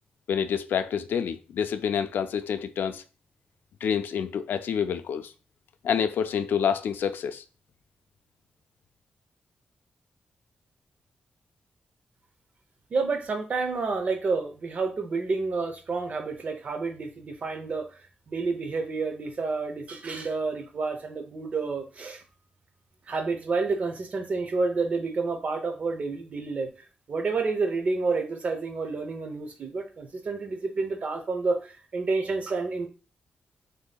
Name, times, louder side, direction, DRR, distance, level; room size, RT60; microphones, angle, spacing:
voice 1, 0.3-3.0 3.8-5.3 5.8-7.4, left 7 dB, 90° left, 0.3 m, -27 dB
voice 2, 12.9-22.2 23.1-26.7 27.1-32.9, right 4 dB, 45° right, 0.7 m, -29 dB
6.6 x 2.8 x 2.3 m
wide cardioid pair, 160°, 3 cm